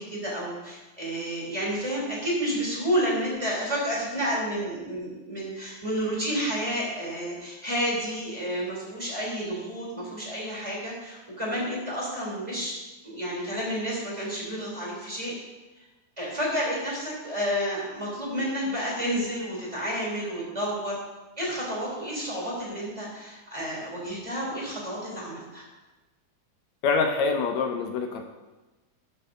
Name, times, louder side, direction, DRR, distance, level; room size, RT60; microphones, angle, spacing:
voice 1, 0.0-12.7 13.0-15.3 16.2-21.0 21.4-25.6, equal, 10° right, -5 dB, 3.1 m, -30 dB
voice 2, 26.8-28.2, left 4 dB, 75° left, 4 dB, 1.8 m, -25 dB
12.0 x 11.5 x 2.7 m, 1.1 s
omnidirectional pair, 3.5 m